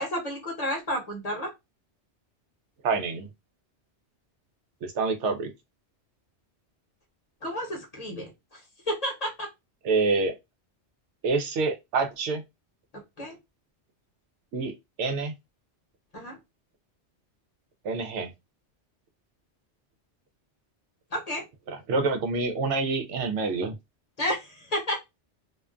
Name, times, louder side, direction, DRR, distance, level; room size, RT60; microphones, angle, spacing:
voice 1, 0.0-1.5 7.4-8.6 8.9-9.5 13.2-13.4 16.1-16.4 21.1-21.4 24.2-25.0, equal, 40° left, 0.8 m, -31 dB
voice 2, 2.8-3.3 4.8-5.5 9.8-10.3 11.2-12.4 14.5-14.7 15.0-15.3 17.8-18.3 21.7-23.8, right 3 dB, 90° right, 0.9 m, -27 dB
2.5 x 2.2 x 2.4 m
omnidirectional pair, 1.2 m